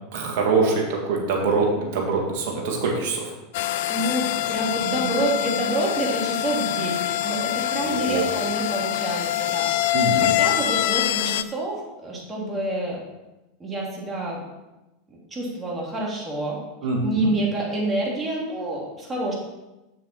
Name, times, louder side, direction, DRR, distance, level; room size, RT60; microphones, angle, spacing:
voice 1, 0.1-3.3 7.8-8.2 9.9-10.3 16.8-17.3, right 4 dB, 55° right, 0 dB, 1.9 m, -24 dB
sound 1, 3.5-11.4, left 13 dB, 60° left, 0.4 m, -25 dB
voice 2, 3.9-13.0 13.6-14.4 15.3-16.6 17.0-19.3, right 1 dB, 20° right, -3 dB, 3.0 m, -28 dB
7.2 x 6.9 x 4.5 m, 1.0 s
figure-of-eight pair, 85°, 0 cm